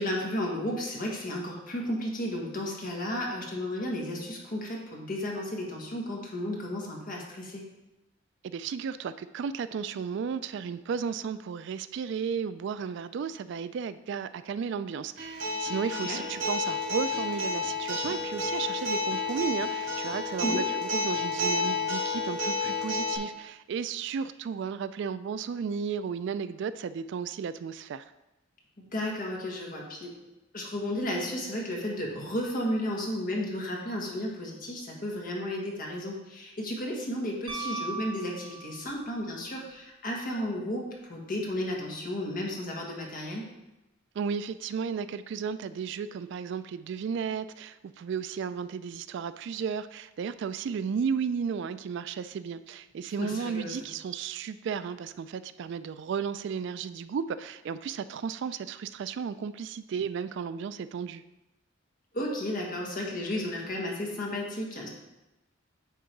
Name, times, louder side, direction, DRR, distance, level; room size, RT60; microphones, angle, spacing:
voice 1, 0.0-7.6 15.9-16.2 20.4-20.7 28.9-30.2 30.5-43.4 53.2-53.8 62.1-64.9, left 1 dB, 45° left, -1 dB, 1.5 m, -33 dB
voice 2, 8.4-28.1 44.1-61.2, right 6 dB, 60° right, 14 dB, 0.3 m, -34 dB
Acoustic guitar, 15.2-23.2, left 3 dB, 80° right, 2.8 m, -30 dB
Piano, 37.5-39.1 41.4-41.5, right 3 dB, 25° right, 0.7 m, -37 dB
9.2 x 3.7 x 4.5 m, 0.98 s
head